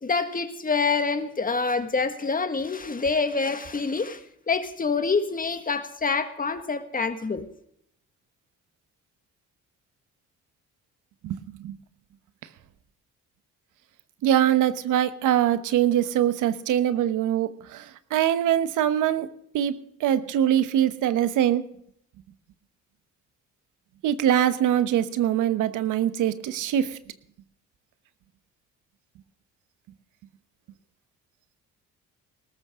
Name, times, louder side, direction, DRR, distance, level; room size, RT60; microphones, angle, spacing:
voice 1, 0.0-4.2 4.5-7.4, left 4 dB, 30° left, 1.7 m, -26 dB
voice 2, 11.2-11.8 14.2-19.3 19.5-19.7 20.0-21.6 24.0-27.0, right 11 dB, 85° right, 1.1 m, -23 dB
19.5 x 13.5 x 3.7 m
cardioid pair, 90°, 30 cm